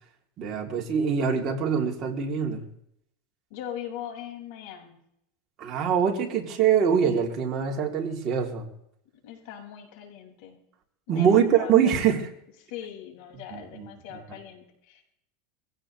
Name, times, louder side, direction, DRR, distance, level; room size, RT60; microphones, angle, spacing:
voice 1, 0.4-2.7 5.6-8.7 11.1-12.2 13.5-13.9, right 7 dB, 35° right, 0 dB, 3.1 m, -24 dB
voice 2, 3.5-5.0 9.2-10.6 11.1-12.2 12.6-15.1, left 10 dB, 65° left, 0 dB, 6.1 m, -41 dB
23.0 x 16.5 x 3.3 m, 0.74 s
supercardioid pair, 150°, 0 cm